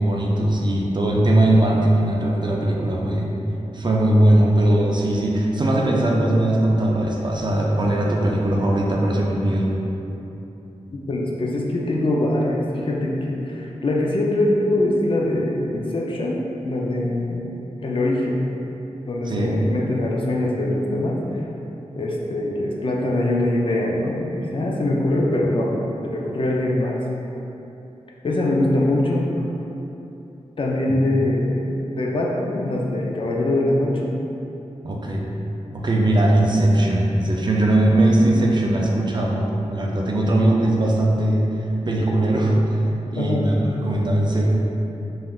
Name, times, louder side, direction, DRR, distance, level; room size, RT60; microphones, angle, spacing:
voice 1, 0.0-3.3 3.7-9.8 19.2-19.5 30.9-31.0 34.8-35.3 35.7-44.5, right 1 dB, 40° right, -2 dB, 0.4 m, -20 dB
voice 2, 10.9-17.5 17.8-18.4 19.1-21.2 22.0-27.0 28.2-29.3 30.6-31.7 32.0-34.2 43.1-43.6, left 1 dB, 45° left, -2 dB, 0.4 m, -23 dB
3.4 x 2.4 x 2.3 m, 3.0 s
wide cardioid pair, 75°, 12 cm